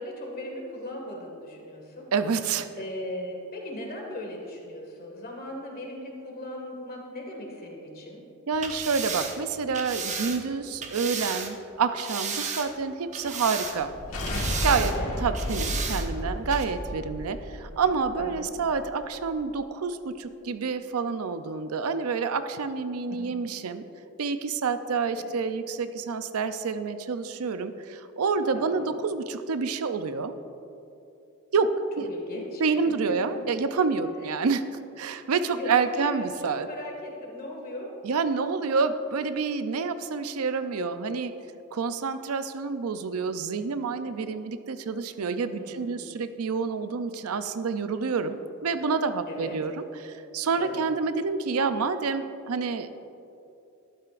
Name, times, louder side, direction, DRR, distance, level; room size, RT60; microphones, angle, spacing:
voice 1, 0.0-2.0 2.8-8.2 14.8-15.1 18.2-18.5 23.1-23.2 25.1-25.3 28.5-28.9 32.1-33.2 35.5-37.9 45.4-46.0 49.3-49.6 50.6-50.8, left 1 dB, 45° left, 0 dB, 1.9 m, -38 dB
voice 2, 2.1-2.7 8.5-13.9 14.6-14.9 15.2-23.8 24.2-30.3 31.5-32.1 32.6-34.6 35.0-36.7 38.0-41.3 41.7-53.0, right 5 dB, 80° right, 10 dB, 0.5 m, -28 dB
sound 1, 8.5-11.5 12.0-12.8 13.1-14.0 14.3-14.9 15.3-16.1 16.5-16.6, right 6 dB, 35° right, 0.8 m, -34 dB
sound 2, 13.7-18.8, left 1 dB, 75° left, 1.4 m, -32 dB
12.5 x 11.5 x 2.5 m, 2.8 s
head